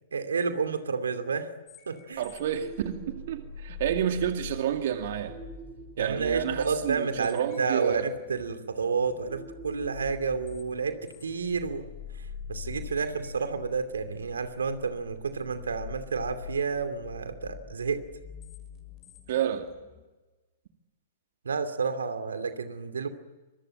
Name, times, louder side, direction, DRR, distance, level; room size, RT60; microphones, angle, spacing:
voice 1, 0.1-1.5 1.9-2.2 6.0-11.9 12.5-18.0 21.4-23.1, right 5 dB, 75° right, 9 dB, 2.7 m, -30 dB
sound 1, 1.7-20.0, left 5 dB, 30° left, 7.1 m, -45 dB
voice 2, 2.2-5.4 6.0-8.1 19.3-19.7, right 10 dB, 55° right, 5 dB, 2.4 m, -30 dB
26.0 x 23.5 x 8.9 m, 1.2 s
figure-of-eight pair, 110°, 0 cm